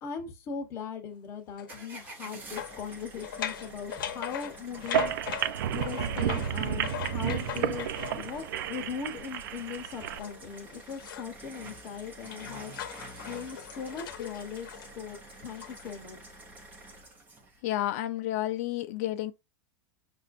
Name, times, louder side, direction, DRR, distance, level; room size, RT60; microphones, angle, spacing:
voice 1, 0.0-5.1 5.7-12.7 13.2-16.2, left 6 dB, 25° left, 0.9 m, -39 dB
sound 1, 1.6-1.8 2.6-8.5 9.8-11.4 11.7-16.0, left 9 dB, 85° left, 0.7 m, -40 dB
sound 2, 1.7-17.6, right 2 dB, 15° right, 0.7 m, -48 dB
sound 3, 4.8-10.2, right 10 dB, 80° right, 0.4 m, -31 dB
voice 2, 17.6-19.3, left 14 dB, 50° left, 0.5 m, -30 dB
5.4 x 2.6 x 2.5 m
supercardioid pair, 175°, 11 cm